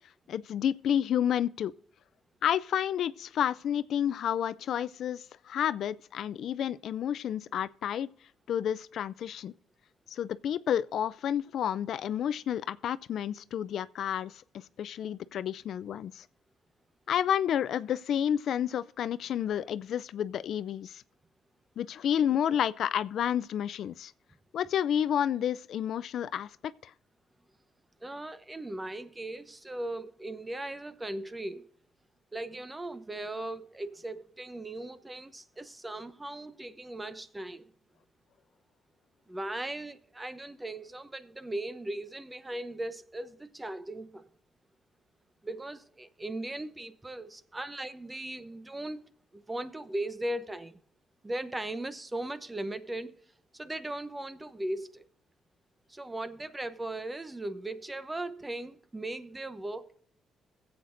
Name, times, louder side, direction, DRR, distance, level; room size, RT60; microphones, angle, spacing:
voice 1, 0.3-1.7 2.4-8.1 8.5-9.5 10.1-16.2 17.1-21.0 21.8-24.1 24.5-26.5 26.8-26.9, left 9 dB, 70° left, 0.4 m, -30 dB
voice 2, 28.0-31.7 32.3-37.7 39.3-44.3 45.4-50.8 51.2-53.1 53.5-55.1 55.9-60.0, right 1 dB, 15° right, 0.8 m, -38 dB
21.5 x 7.9 x 2.6 m
cardioid pair, 90°, 0 cm